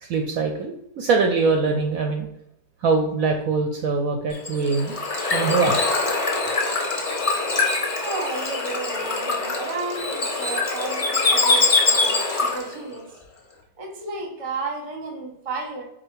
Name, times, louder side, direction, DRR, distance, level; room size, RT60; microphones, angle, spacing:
voice 1, 0.0-2.3 2.8-5.0 5.3-5.9, right 4 dB, 70° right, 3 dB, 0.9 m, -23 dB
Bird / Water, 4.3-12.7, left 3 dB, 30° left, 0.6 m, -23 dB
voice 2, 8.0-13.1 13.8-15.8, right 3 dB, 30° right, 2 dB, 0.7 m, -33 dB
4.2 x 2.6 x 4.5 m, 0.80 s
omnidirectional pair, 1.8 m